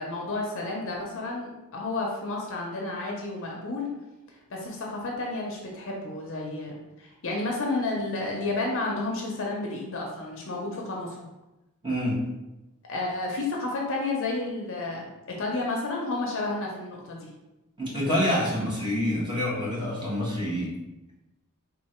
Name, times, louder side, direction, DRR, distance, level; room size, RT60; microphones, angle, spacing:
voice 1, 0.0-3.9 4.5-11.2 12.9-17.3, left 2 dB, 60° left, -1 dB, 0.7 m, -31 dB
voice 2, 11.8-12.2 17.8-20.7, left 1 dB, 20° right, -7 dB, 1.3 m, -27 dB
3.7 x 2.5 x 4.3 m, 1.0 s
head